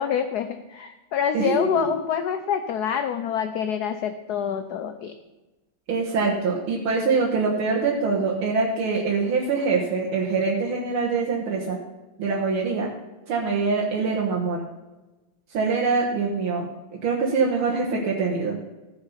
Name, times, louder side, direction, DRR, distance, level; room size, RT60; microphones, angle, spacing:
voice 1, 0.0-5.1, left 8 dB, 70° left, 9 dB, 0.9 m, -26 dB
voice 2, 1.3-1.9 5.9-11.8 12.2-12.9 13.3-14.6 15.5-16.7 16.9-18.6, right 4 dB, 80° right, -3 dB, 2.2 m, -24 dB
14.5 x 7.0 x 5.7 m, 1.1 s
omnidirectional pair, 2.3 m